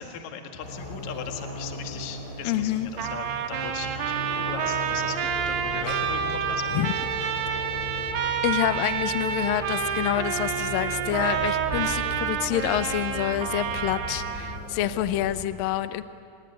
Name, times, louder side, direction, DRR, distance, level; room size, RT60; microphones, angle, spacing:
voice 1, 0.0-6.9, left 8 dB, 55° left, 5 dB, 2.7 m, -39 dB
sound 1, 0.6-15.5, left 1 dB, 20° left, 3.8 m, -37 dB
voice 2, 2.4-2.9 5.9-6.0 6.7-6.9 7.5-7.7 8.4-16.0, left 13 dB, 75° left, 12 dB, 2.2 m, -27 dB
Trumpet, 3.0-14.6, right 8 dB, 85° right, 3.6 m, -29 dB
28.0 x 19.5 x 9.7 m, 2.7 s
omnidirectional pair, 4.6 m